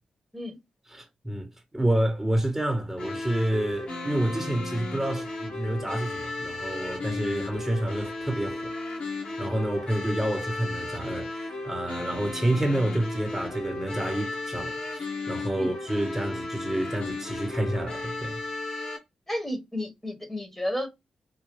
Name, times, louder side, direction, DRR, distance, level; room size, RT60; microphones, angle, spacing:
voice 1, 0.9-8.7 9.4-18.4, right 1 dB, 10° right, 0.9 m, -29 dB
sound 1, 3.0-19.0, left 2 dB, 55° left, 2.2 m, -35 dB
voice 2, 19.3-20.9, left 1 dB, 10° left, 1.2 m, -32 dB
4.6 x 2.2 x 3.1 m
cardioid pair, 70°, 2 cm